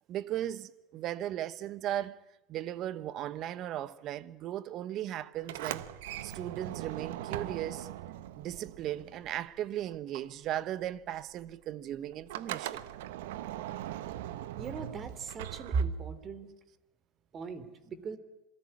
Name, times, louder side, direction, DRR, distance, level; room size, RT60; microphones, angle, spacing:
voice 1, 0.1-2.2 2.5-5.9 6.2-7.9 8.4-12.8, right 12 dB, 45° right, 1.3 m, -37 dB
Sliding door, 5.4-9.7 9.9-16.3, right 13 dB, 85° right, 1.1 m, -41 dB
voice 2, 14.5-16.5 17.3-18.2, right 5 dB, 30° right, 3.1 m, -36 dB
27.5 x 19.5 x 9.9 m
supercardioid pair, 125°, 0 cm